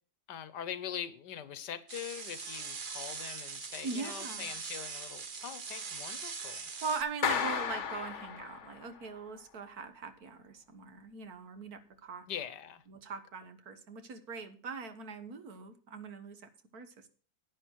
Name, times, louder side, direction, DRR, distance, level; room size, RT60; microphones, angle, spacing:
voice 1, 0.3-6.6 12.3-12.8, left 9 dB, 75° left, 1.5 m, -42 dB
sound 1, 1.9-7.0, right 5 dB, 35° right, 0.9 m, -41 dB
voice 2, 3.8-4.5 6.8-12.3 12.9-17.1, right 4 dB, 60° right, 1.7 m, -41 dB
Clapping, 7.2-9.0, left 7 dB, 50° left, 1.2 m, -33 dB
10.5 x 9.6 x 4.6 m
omnidirectional pair, 1.9 m